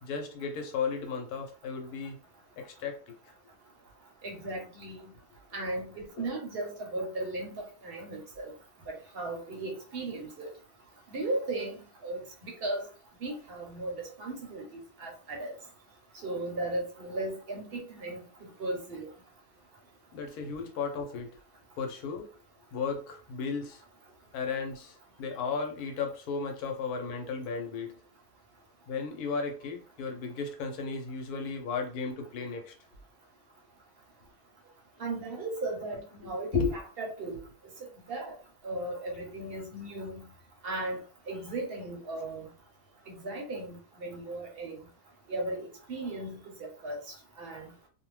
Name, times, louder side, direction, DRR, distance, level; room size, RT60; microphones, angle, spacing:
voice 1, 0.0-2.2 2.6-3.1 6.2-6.3 20.1-21.3 21.8-22.3 22.7-23.8 24.3-28.0 28.9-32.7 36.5-36.8, left 5 dB, 85° left, 1.2 m, -34 dB
voice 2, 4.2-5.0 5.5-7.5 7.8-8.5 9.1-10.5 11.1-11.8 12.0-12.9 13.2-14.6 15.0-15.5 16.2-18.2 18.6-19.1 35.0-36.6 37.0-37.4 38.1-38.4 38.6-40.2 40.6-41.0 41.3-42.5 43.2-44.8 45.3-47.0 47.4-47.7, right 2 dB, 50° right, 0.8 m, -36 dB
2.7 x 2.1 x 3.1 m
omnidirectional pair, 1.6 m